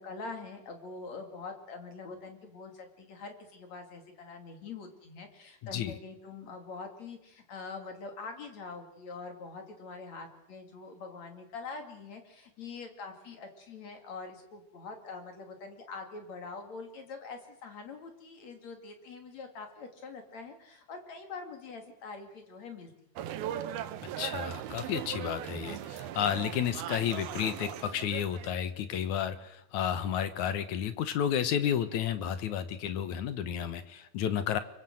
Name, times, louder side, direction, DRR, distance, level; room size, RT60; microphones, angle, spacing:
voice 1, 0.0-22.9, left 4 dB, 45° left, 5 dB, 3.6 m, -44 dB
sound 1, 23.2-28.6, right 11 dB, 75° right, 2.9 m, -39 dB
voice 2, 24.2-34.6, left 9 dB, 65° left, 11 dB, 2.2 m, -31 dB
26.0 x 23.5 x 7.8 m, 0.84 s
omnidirectional pair, 4.5 m